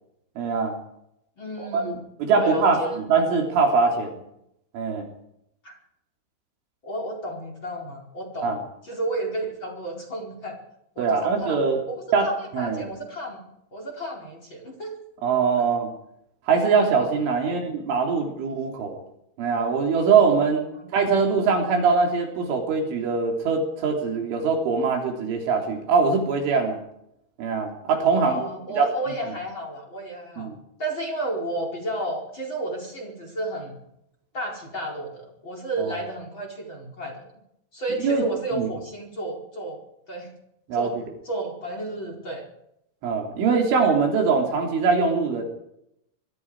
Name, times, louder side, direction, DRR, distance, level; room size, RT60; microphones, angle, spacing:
voice 1, 0.4-0.8 1.6-1.9 2.2-4.1 4.7-5.1 8.4-8.6 11.0-11.8 12.1-12.9 15.2-15.9 16.5-19.0 19.4-20.6 20.9-26.8 27.4-28.5 28.8-28.9 30.4-30.6 35.8-35.9 38.0-38.7 40.7-40.9 43.0-45.4, right 5 dB, 70° right, 2 dB, 6.0 m, -22 dB
voice 2, 1.4-1.9 2.3-3.0 5.6-5.7 6.8-8.6 8.8-10.6 10.9-11.6 11.9-13.4 13.7-14.9 17.4-17.6 20.7-20.9 28.1-30.5 30.8-33.8 34.3-37.3 37.7-39.8 40.1-40.3 40.7-41.0 41.2-42.5, right 1 dB, 25° left, 2 dB, 4.8 m, -32 dB
25.5 x 23.5 x 4.9 m, 0.79 s
omnidirectional pair, 5.8 m